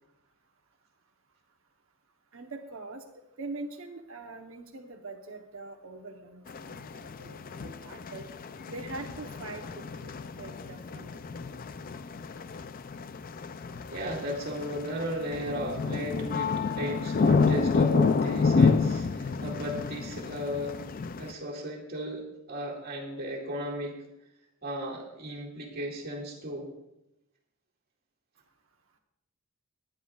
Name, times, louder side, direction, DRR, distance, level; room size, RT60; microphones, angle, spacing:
voice 1, 2.3-3.0 3.4-8.3 8.7-10.1 10.4-11.2, right 3 dB, 70° right, 2 dB, 1.0 m, -43 dB
sound 1, 6.5-21.3, left 4 dB, 40° left, 0.4 m, -29 dB
voice 2, 13.9-20.8 21.2-24.0 24.6-26.7, equal, 45° right, -3 dB, 2.2 m, -35 dB
20.0 x 10.5 x 2.4 m, 0.87 s
head